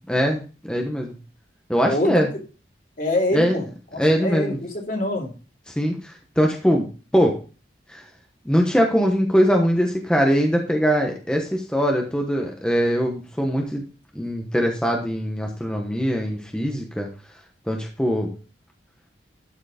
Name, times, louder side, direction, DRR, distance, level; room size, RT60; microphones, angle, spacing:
voice 1, 0.1-1.1 1.7-2.3 3.3-3.6 4.0-4.6 5.7-7.4 7.9-8.0 8.4-13.8 14.1-17.1 17.7-18.3, equal, 5° left, 1 dB, 1.1 m, -22 dB
voice 2, 1.8-2.2 3.0-3.6 3.9-5.3, left 1 dB, 50° left, 0 dB, 2.8 m, -25 dB
12.0 x 4.8 x 5.0 m, 0.36 s
head